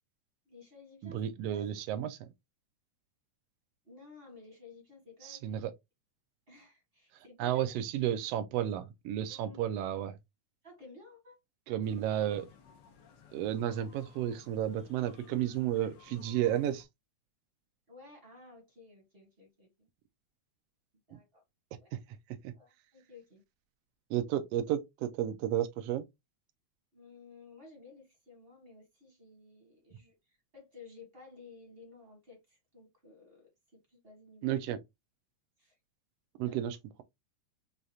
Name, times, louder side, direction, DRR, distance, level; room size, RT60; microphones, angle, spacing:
voice 1, 0.4-1.2 1.5-1.6 3.8-5.4 6.5-7.6 9.3-9.6 10.6-11.4 17.9-19.9 21.1-21.4 21.8-21.9 22.5-23.4 26.9-34.5 35.6-35.8 36.5-36.6, left 3 dB, 35° right, 0.9 m, -55 dB
voice 2, 1.0-2.3 5.2-5.7 7.1-10.2 11.7-12.5 13.3-16.9 21.1-21.2 21.9-22.0 22.3-22.5 24.1-26.0 34.4-34.8 36.4-37.0, right 11 dB, 85° right, 1.4 m, -32 dB
sound 1, 11.8-16.8, left 7 dB, 80° left, 1.0 m, -57 dB
6.4 x 2.4 x 2.7 m
omnidirectional pair, 3.4 m